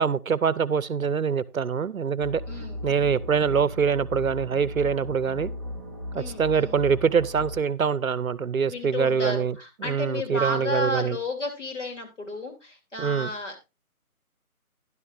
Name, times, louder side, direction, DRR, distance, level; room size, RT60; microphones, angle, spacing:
voice 1, 0.0-2.4 2.8-5.5 6.1-9.5 9.8-11.2 13.0-13.3, right 6 dB, 65° right, 0.7 m, -24 dB
sound 1, 2.2-7.6, left 1 dB, 20° left, 1.1 m, -37 dB
voice 2, 2.5-2.8 6.1-6.9 8.7-13.8, left 1 dB, 55° left, 3.0 m, -32 dB
12.0 x 11.0 x 2.5 m
figure-of-eight pair, 180°, 44 cm